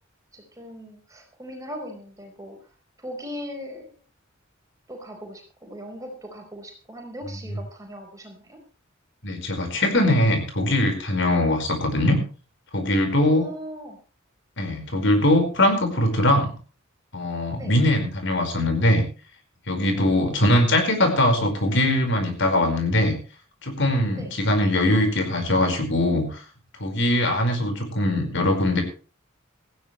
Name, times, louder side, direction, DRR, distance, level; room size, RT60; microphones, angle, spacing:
voice 1, 0.3-2.7 3.0-4.0 4.9-8.6 11.5-11.6 13.2-14.0 17.6-17.7 20.0-20.5 24.1-24.3, equal, 15° right, 3 dB, 4.6 m, -39 dB
voice 2, 9.2-12.2 12.7-13.5 14.6-16.6 17.1-19.0 19.7-23.2 23.6-26.4 26.8-28.8, left 1 dB, 60° left, 5 dB, 4.9 m, -21 dB
18.0 x 15.5 x 3.2 m, 0.37 s
head